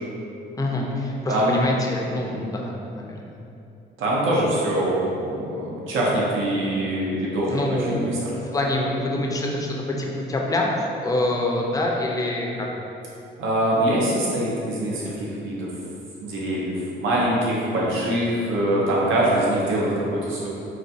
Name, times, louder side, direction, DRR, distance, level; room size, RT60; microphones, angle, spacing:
voice 1, 0.5-3.4 7.5-12.7, left 1 dB, 20° left, -1 dB, 0.5 m, -26 dB
voice 2, 4.0-7.5 7.9-8.1 13.4-15.7 16.2-20.5, right 1 dB, 80° right, -5 dB, 0.7 m, -23 dB
4.0 x 2.2 x 2.6 m, 2.7 s
cardioid pair, 90°, 20 cm